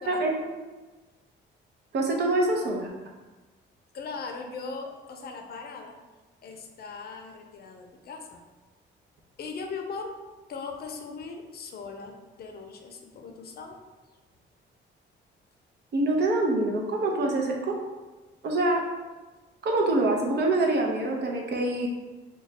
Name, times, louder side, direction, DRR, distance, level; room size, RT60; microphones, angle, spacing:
voice 1, 1.9-2.9 15.9-17.8 18.4-18.8 19.6-21.9, right 2 dB, 60° right, 0 dB, 0.7 m, -25 dB
voice 2, 3.9-5.9 6.4-8.4 9.4-10.1 10.5-13.8, left 4 dB, 50° left, 3 dB, 0.5 m, -39 dB
3.0 x 2.2 x 4.1 m, 1.2 s
cardioid pair, 90°, 20 cm